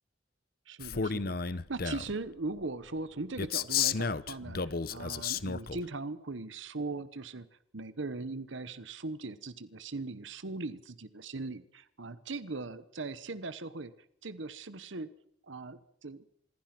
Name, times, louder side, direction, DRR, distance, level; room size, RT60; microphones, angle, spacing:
voice 1, 0.7-7.5 7.7-13.9 14.2-15.1 15.4-16.2, right 3 dB, 75° right, 14 dB, 1.1 m, -39 dB
Male speech man speaking, 0.8-2.1 3.4-5.8, left 6 dB, 50° left, 0.9 m, -32 dB
26.0 x 22.0 x 6.0 m, 0.71 s
head